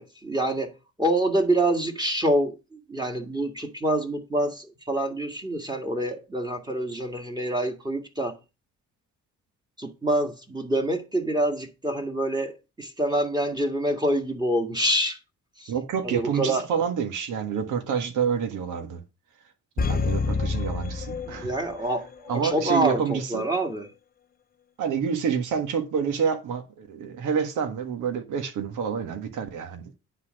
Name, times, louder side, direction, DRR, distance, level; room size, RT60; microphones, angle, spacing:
voice 1, 0.0-8.4 9.8-15.2 15.6-15.7 16.0-16.7 21.2-23.9, right 1 dB, 15° right, 1.8 m, -26 dB
voice 2, 15.7-19.0 19.8-21.5 22.3-23.5 24.8-30.0, right 7 dB, 80° right, 1.7 m, -28 dB
sound 1, 19.8-22.0 22.3-22.4, left 4 dB, 30° left, 0.7 m, -28 dB
9.8 x 4.2 x 6.3 m
cardioid pair, 90°, 30 cm